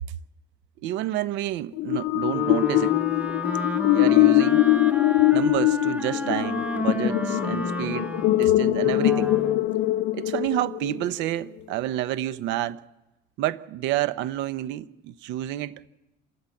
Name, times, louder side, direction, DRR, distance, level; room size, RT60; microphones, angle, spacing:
voice 1, 0.8-2.9 3.9-4.6 5.3-8.1 8.4-9.3 10.1-12.8 13.4-15.9, right 14 dB, 75° right, 0.9 m, -29 dB
sound 1, 1.8-11.1, left 17 dB, 70° left, 0.7 m, -22 dB
Wind instrument woodwind instrument, 2.3-9.7, equal, 5° right, 1.2 m, -31 dB
27.0 x 13.0 x 7.9 m
cardioid pair, 105°, 19 cm